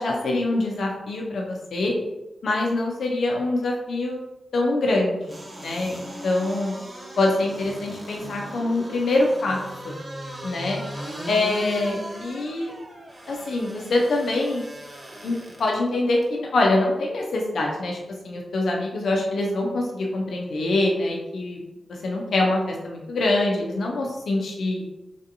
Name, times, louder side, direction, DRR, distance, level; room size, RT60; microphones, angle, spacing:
voice 1, 0.0-1.9 2.4-4.2 4.5-6.7 7.2-9.9 10.4-10.8 11.3-12.7 13.3-14.6 15.2-15.3 15.6-18.0 18.2-21.6 22.0-24.8, left 2 dB, 80° left, -1 dB, 0.5 m, -24 dB
sound 1, 5.2-15.8 16.2-16.3, right 1 dB, 40° right, 1.0 m, -38 dB
3.3 x 2.7 x 2.5 m, 1.0 s
cardioid pair, 50°, 0 cm